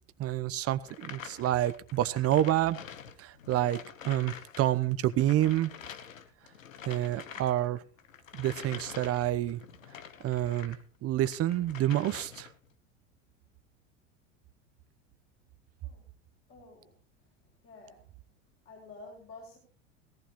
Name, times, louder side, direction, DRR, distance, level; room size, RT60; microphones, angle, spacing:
voice 1, 0.2-2.8 3.2-5.7 6.9-7.8 8.3-9.6 10.2-12.5, right 13 dB, 40° right, 14 dB, 0.9 m, -28 dB
sound 1, 0.8-4.7 4.9-10.8 11.2-12.7, left 8 dB, 90° left, 1.2 m, -47 dB
voice 2, 16.5-18.1 18.6-19.6, left 3 dB, 35° left, -1 dB, 7.1 m, -51 dB
18.0 x 14.5 x 3.1 m, 0.36 s
hypercardioid pair, 90°, 39 cm